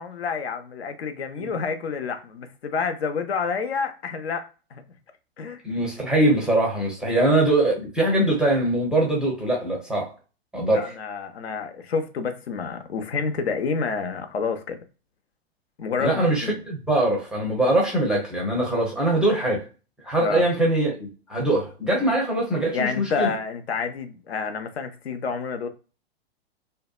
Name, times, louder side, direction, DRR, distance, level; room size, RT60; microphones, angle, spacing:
voice 1, 0.0-4.4 4.7-4.8 5.4-5.6 7.0-7.2 10.7-14.8 15.8-16.6 20.2-20.4 22.0-22.1 22.7-25.7, left 5 dB, 80° left, 0.5 m, -29 dB
voice 2, 5.6-10.1 10.5-10.9 16.0-19.7 20.0-23.3, right 1 dB, 5° right, 0.4 m, -22 dB
2.7 x 2.2 x 2.3 m
figure-of-eight pair, 110°, 31 cm